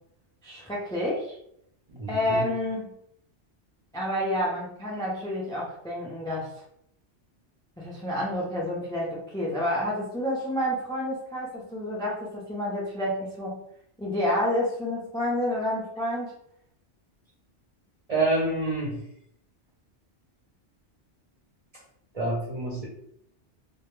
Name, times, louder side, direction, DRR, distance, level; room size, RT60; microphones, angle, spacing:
voice 1, 0.4-1.4 2.1-2.9 3.9-6.5 7.8-13.6 14.0-16.3, left 1 dB, 5° left, -4 dB, 0.3 m, -29 dB
voice 2, 1.9-2.5 18.1-19.0 22.1-22.9, right 2 dB, 40° right, -5 dB, 0.6 m, -27 dB
2.2 x 2.1 x 3.0 m, 0.74 s
omnidirectional pair, 1.2 m